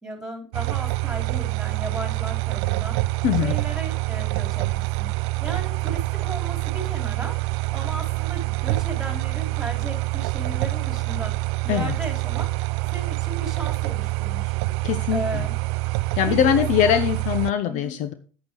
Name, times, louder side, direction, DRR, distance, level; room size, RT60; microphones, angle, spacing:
voice 1, 0.0-3.0 3.4-7.4 7.7-11.4 11.6-12.5 12.9-14.6 15.1-15.5 16.3-17.0 17.7-18.0, right 1 dB, 5° right, 4 dB, 4.0 m, -35 dB
sound 1, 0.5-17.5, right 23 dB, 60° right, 0.4 m, -26 dB
voice 2, 3.2-3.5 11.7-12.0 14.8-15.5 16.2-18.1, left 10 dB, 50° left, 11 dB, 0.9 m, -22 dB
8.9 x 8.8 x 4.6 m, 0.38 s
hypercardioid pair, 90°, 16 cm